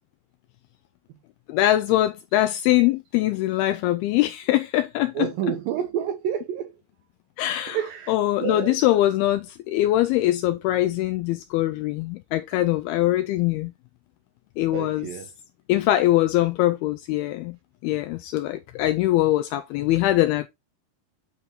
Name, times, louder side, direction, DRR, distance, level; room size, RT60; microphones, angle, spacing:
voice 1, 1.5-5.3 7.4-13.7 14.6-15.1 15.7-17.6 17.8-20.5, left 15 dB, 85° left, 2.2 m, -22 dB
voice 2, 5.2-6.7 7.7-8.1 8.4-8.8 14.7-15.2, right 9 dB, 75° right, 2.1 m, -28 dB
9.4 x 4.3 x 3.9 m
omnidirectional pair, 4.9 m